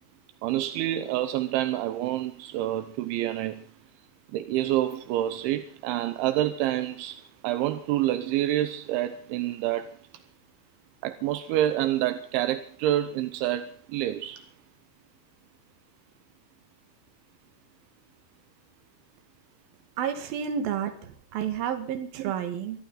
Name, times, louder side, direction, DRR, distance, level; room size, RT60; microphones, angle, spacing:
voice 1, 0.4-3.6 4.3-9.9 11.0-14.4 22.2-22.3, right 13 dB, 80° right, 3.3 m, -28 dB
voice 2, 20.0-22.8, right 8 dB, 55° right, 3.4 m, -31 dB
24.5 x 14.5 x 3.9 m
omnidirectional pair, 5.4 m